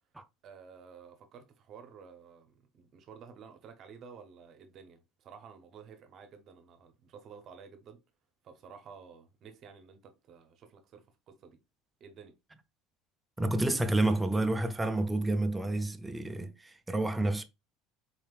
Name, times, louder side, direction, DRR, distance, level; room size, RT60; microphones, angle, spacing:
voice 1, 0.4-8.0 8.4-11.6 12.0-12.4, right 6 dB, 40° right, 0.7 m, -52 dB
voice 2, 13.4-17.4, right 2 dB, 5° right, 0.3 m, -29 dB
4.0 x 3.4 x 2.3 m
cardioid pair, 145°, 0 cm